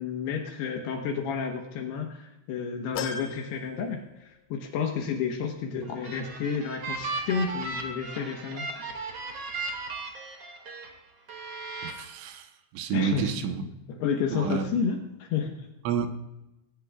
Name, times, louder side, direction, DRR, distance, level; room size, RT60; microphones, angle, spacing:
voice 1, 0.0-8.6 12.9-15.7, left 6 dB, 75° left, 2 dB, 2.7 m, -31 dB
sound 1, 3.0-4.6 5.0-5.1 6.3-6.4, left 8 dB, 90° left, 3.4 m, -39 dB
sound 2, 5.8-10.9 11.3-11.9, right 3 dB, 45° right, 2.1 m, -36 dB
voice 2, 11.8-12.5 12.7-13.6 14.3-14.8 15.9-16.1, right 7 dB, 80° right, 6 dB, 3.4 m, -29 dB
20.5 x 17.5 x 2.4 m, 0.98 s
omnidirectional pair, 5.7 m